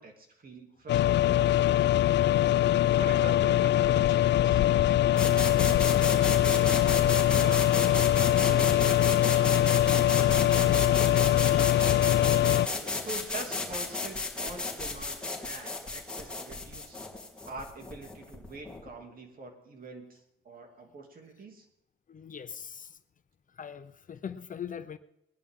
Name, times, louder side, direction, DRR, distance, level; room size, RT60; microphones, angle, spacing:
voice 1, 0.0-2.0 3.0-9.8 10.3-12.1 13.0-17.0 17.5-21.7, right 3 dB, 45° right, 3 dB, 3.0 m, -45 dB
sound 1, 0.9-12.7, left 13 dB, 65° left, 0.4 m, -23 dB
sound 2, 5.2-18.9, left 3 dB, 5° left, 3.5 m, -33 dB
voice 2, 22.1-23.0 23.6-25.0, left 7 dB, 40° left, 11 dB, 0.8 m, -41 dB
20.5 x 11.0 x 3.8 m, 0.81 s
cardioid pair, 90°, 20 cm